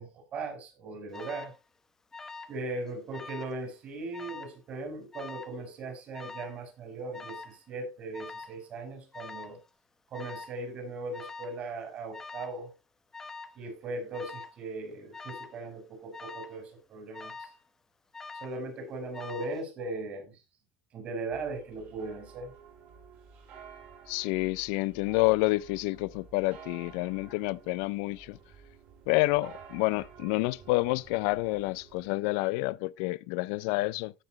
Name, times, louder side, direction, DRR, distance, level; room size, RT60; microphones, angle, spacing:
voice 1, 0.0-1.5 2.5-9.6 10.1-12.7 13.5-17.5 18.4-20.4 20.9-22.5, right 2 dB, 40° right, 4.9 m, -38 dB
Alarm, 1.1-1.6 2.1-2.6 2.9-3.6 4.1-4.6 5.1-5.6 6.1-6.6 7.1-7.6 8.1-8.6 9.1-9.6 10.1-10.6 11.1-11.6 12.1-12.6 13.1-13.6 14.1-14.6 15.1-15.6 16.1-16.6 17.1-17.6 18.1-18.6 19.1-19.6, left 4 dB, 10° left, 0.8 m, -44 dB
sound 1, 21.3-32.1, right 6 dB, 55° right, 5.3 m, -52 dB
voice 2, 24.1-28.4 29.1-34.1, left 22 dB, 80° left, 0.4 m, -28 dB
16.0 x 5.9 x 3.1 m
cardioid pair, 160°, 4 cm